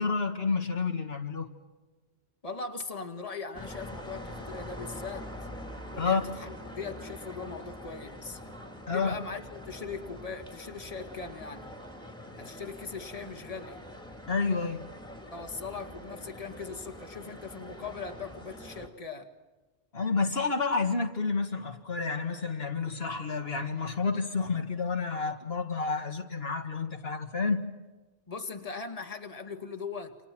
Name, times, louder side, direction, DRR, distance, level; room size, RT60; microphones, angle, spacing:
voice 1, 0.0-1.5 6.0-6.2 8.9-9.1 14.3-14.9 19.9-27.7, left 4 dB, 60° left, 5 dB, 2.1 m, -30 dB
voice 2, 2.4-5.3 5.9-8.4 8.9-11.7 12.4-13.8 15.3-19.3 28.3-30.2, left 4 dB, 30° left, 5 dB, 2.1 m, -40 dB
sound 1, 3.5-18.9, equal, 5° left, 3.5 m, -44 dB
29.0 x 27.5 x 6.1 m, 1.2 s
omnidirectional pair, 1.2 m